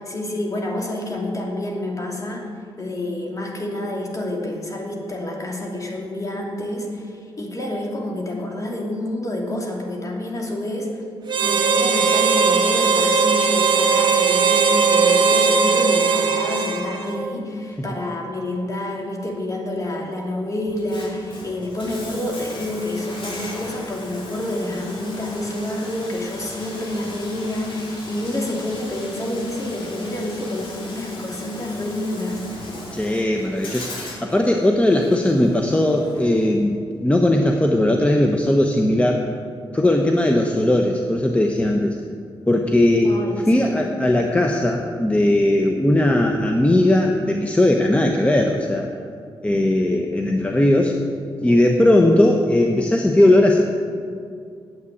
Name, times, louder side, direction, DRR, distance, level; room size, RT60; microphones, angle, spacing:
voice 1, 0.0-2.5 2.8-11.0 11.4-32.4 43.0-43.8, left 1 dB, 35° left, -1 dB, 2.6 m, -28 dB
Harmonica, 11.3-17.2, right 5 dB, 50° right, 2.0 m, -18 dB
Bathtub (filling or washing), 20.7-36.6, left 1 dB, 65° left, 3.2 m, -38 dB
voice 2, 32.9-39.2 39.7-42.0 42.5-43.2 43.5-48.9 49.4-50.9 51.4-53.6, left 1 dB, 15° left, 2 dB, 0.9 m, -18 dB
9.6 x 8.3 x 8.6 m, 2.3 s
cardioid pair, 90°, 10 cm